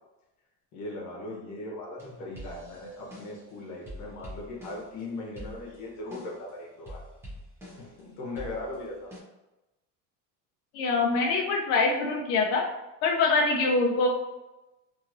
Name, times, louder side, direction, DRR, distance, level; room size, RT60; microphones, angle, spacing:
voice 1, 0.7-7.0 7.8-9.1, left 2 dB, 45° left, -2 dB, 0.9 m, -39 dB
sound 1, 2.0-3.5 3.9-5.0 5.4-6.5 6.9-8.0 8.4-9.2, equal, 5° right, 0.6 m, -45 dB
voice 2, 10.7-12.7 13.0-14.1, left 3 dB, 60° left, -1 dB, 0.5 m, -24 dB
2.9 x 2.8 x 2.5 m, 1.0 s
cardioid pair, 170°, 40 cm